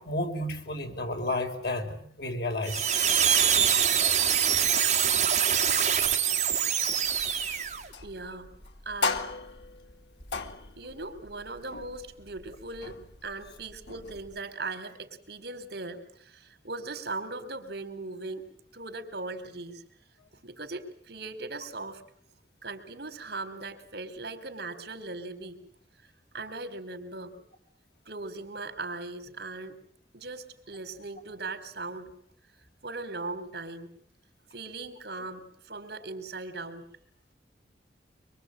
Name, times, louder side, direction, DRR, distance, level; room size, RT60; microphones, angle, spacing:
voice 1, 0.0-2.8, left 1 dB, 70° left, 4 dB, 5.0 m, -32 dB
sound 1, 2.6-7.8, right 8 dB, 40° right, 3.7 m, -24 dB
sound 2, 7.0-14.4, left 3 dB, 85° left, 2.5 m, -38 dB
voice 2, 8.0-8.5 8.9-9.3 10.8-18.4 18.7-19.8 20.4-22.0 22.6-25.6 26.3-27.3 28.1-29.8 30.1-32.1 32.8-33.9 34.5-36.8, right 3 dB, 70° right, 8 dB, 4.1 m, -39 dB
25.0 x 24.5 x 9.1 m, 0.63 s
head